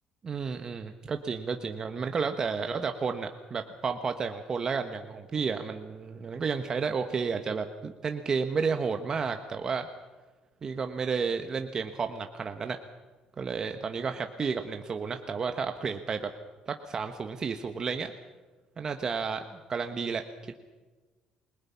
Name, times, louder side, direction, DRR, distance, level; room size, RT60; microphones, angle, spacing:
voice 1, 0.2-9.9 10.6-12.8 13.4-16.3 16.7-18.1 18.8-20.5, right 5 dB, 30° right, 6 dB, 1.3 m, -32 dB
29.0 x 21.5 x 5.8 m, 1.3 s
cardioid pair, 145°, 2 cm